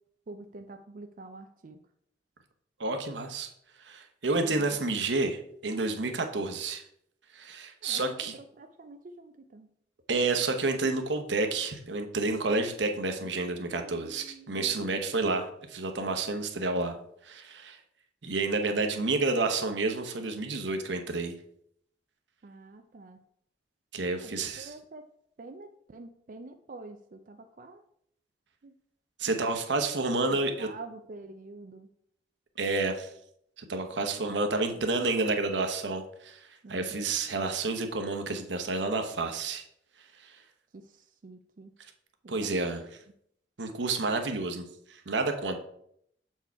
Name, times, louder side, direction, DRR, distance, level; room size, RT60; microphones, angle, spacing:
voice 1, 0.3-1.8 7.8-9.7 13.2-15.0 22.4-23.2 24.2-25.1 25.4-27.8 28.6-28.7 29.3-29.5 30.3-31.9 34.6-34.8 36.6-37.1 40.7-41.7 42.2-42.5, right 3 dB, 50° right, 7 dB, 0.4 m, -47 dB
voice 2, 2.8-3.5 3.8-6.8 7.3-8.3 10.1-17.0 17.2-17.8 18.2-21.3 23.9-24.7 29.2-30.7 32.6-33.1 33.6-36.4 36.7-39.6 42.3-42.8 43.6-44.6 44.9-45.6, right 3 dB, 90° right, 6 dB, 0.9 m, -30 dB
7.1 x 4.6 x 4.6 m, 0.70 s
head